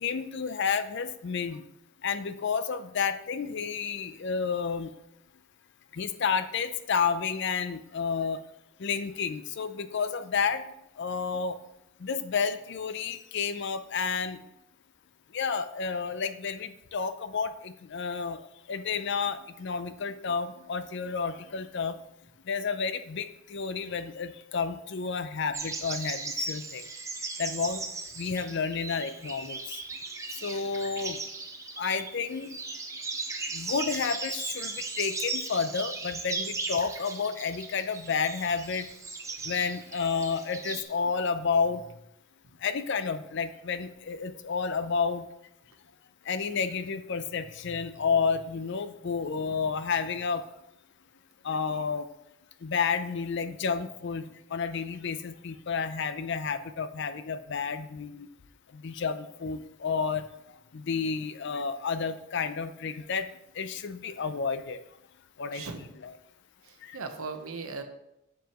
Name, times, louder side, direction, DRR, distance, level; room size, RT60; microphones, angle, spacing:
voice 1, 0.0-1.6 2.0-4.9 5.9-8.4 8.8-10.7 11.0-11.6 12.0-14.4 15.3-18.4 18.7-21.9 22.5-26.8 27.4-27.8 28.2-29.6 30.4-31.2 31.8-32.6 33.5-38.8 39.5-41.8 42.6-45.2 46.3-50.4 51.4-52.0 52.6-54.2 54.5-58.3 58.7-60.2 60.7-63.3 63.6-64.8 65.4-65.7 66.0-66.1, left 5 dB, 55° left, 11 dB, 0.5 m, -30 dB
sound 1, 25.5-40.8, right 3 dB, 15° right, 0.6 m, -37 dB
voice 2, 65.5-65.9 66.6-67.8, right 4 dB, 80° right, 7 dB, 0.9 m, -38 dB
7.4 x 7.0 x 3.0 m, 0.82 s
head